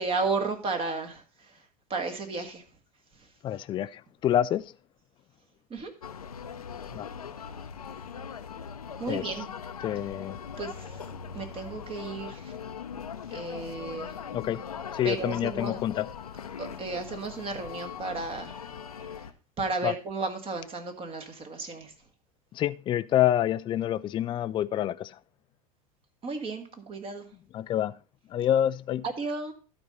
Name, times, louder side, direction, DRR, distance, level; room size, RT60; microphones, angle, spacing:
voice 1, 0.0-1.5 1.9-2.6 5.7-5.9 9.0-9.5 10.6-10.9 11.3-12.5 13.3-14.1 15.0-15.7 16.6-18.7 19.6-21.9 26.2-27.2 29.2-29.5, right 3 dB, 30° right, 1.9 m, -33 dB
voice 2, 3.4-4.7 6.9-7.1 9.1-9.3 9.8-10.4 14.3-14.6 14.9-16.1 19.8-19.9 22.5-25.2 27.5-27.9 28.3-29.1, left 11 dB, 25° left, 0.4 m, -27 dB
sound 1, 6.0-19.3, left 7 dB, 90° left, 0.7 m, -40 dB
12.0 x 4.4 x 5.4 m
hypercardioid pair, 85°, 18 cm